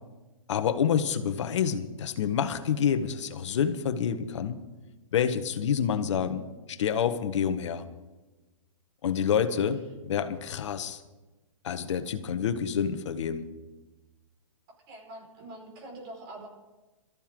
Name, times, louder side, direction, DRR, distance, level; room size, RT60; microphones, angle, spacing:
voice 1, 0.5-4.6 5.1-7.8 9.0-11.0 11.6-13.5, left 8 dB, 60° left, 10 dB, 1.5 m, -28 dB
voice 2, 9.2-9.5 14.9-16.5, right 1 dB, 45° right, 0 dB, 5.3 m, -45 dB
23.5 x 14.0 x 3.9 m, 1.1 s
hypercardioid pair, 135°, 17 cm